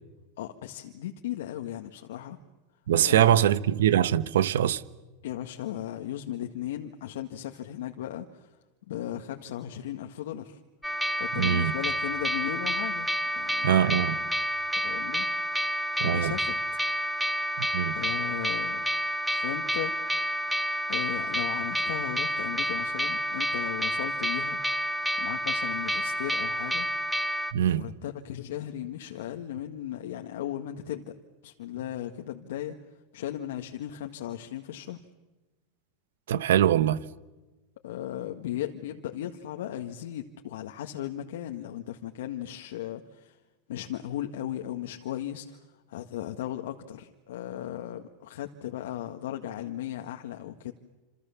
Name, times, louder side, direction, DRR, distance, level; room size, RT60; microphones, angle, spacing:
voice 1, 0.4-2.4 3.0-3.5 5.2-8.5 8.9-10.6 11.2-14.2 14.7-15.3 16.0-16.6 17.9-18.8 19.3-20.0 20.9-24.6 25.2-26.9 27.7-31.1 31.4-32.8 33.1-35.0 37.8-43.4 43.7-50.7, left 12 dB, 75° left, 1.8 m, -36 dB
voice 2, 2.9-4.8 11.3-11.7 13.6-14.2 16.0-16.3 17.6-18.0 27.5-27.9 36.3-37.0, right 10 dB, 80° right, 1.2 m, -23 dB
sound 1, 10.8-27.5, equal, ahead, 1.4 m, -29 dB
29.0 x 28.0 x 7.2 m
hypercardioid pair, 110°, 0 cm